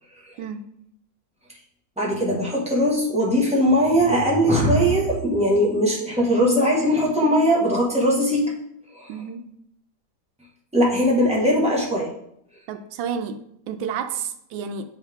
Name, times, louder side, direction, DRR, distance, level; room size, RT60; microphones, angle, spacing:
voice 1, 2.0-8.5 8.9-9.1 10.7-12.1, equal, 5° right, -4 dB, 1.1 m, -20 dB
voice 2, 9.1-9.4 12.7-14.9, right 7 dB, 85° right, 8 dB, 1.4 m, -31 dB
8.4 x 3.6 x 3.5 m, 0.73 s
omnidirectional pair, 2.1 m